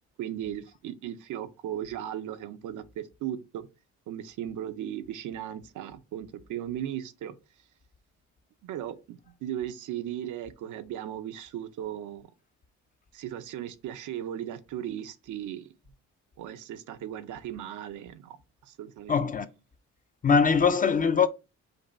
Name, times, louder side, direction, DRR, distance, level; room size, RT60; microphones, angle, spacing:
voice 1, 0.2-3.7 4.1-7.4 8.6-12.3 13.1-15.7 16.4-19.3, right 11 dB, 80° right, 0.6 m, -37 dB
voice 2, 19.1-19.5 20.2-21.3, left 6 dB, 30° left, 0.4 m, -22 dB
5.2 x 2.2 x 4.1 m
cardioid pair, 90°, 30 cm